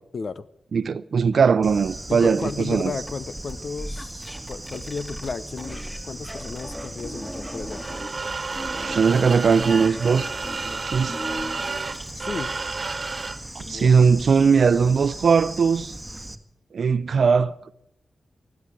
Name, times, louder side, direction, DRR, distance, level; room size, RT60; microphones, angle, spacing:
voice 1, 0.1-0.5 2.1-7.8 12.1-12.6 13.6-13.9, left 4 dB, 60° left, 0.9 m, -34 dB
voice 2, 0.7-2.9 8.8-10.3 10.9-11.2 13.5-15.9 16.7-17.7, right 5 dB, 70° right, 0.7 m, -19 dB
Bird / Insect, 1.6-16.4, right 1 dB, 15° right, 1.8 m, -38 dB
sound 1, 3.1-6.0 6.3-8.1 8.5-12.2, equal, 5° left, 2.9 m, -37 dB
sound 2, 7.7-13.5, right 4 dB, 45° right, 1.6 m, -31 dB
15.5 x 12.0 x 7.8 m
cardioid pair, 50°, 0 cm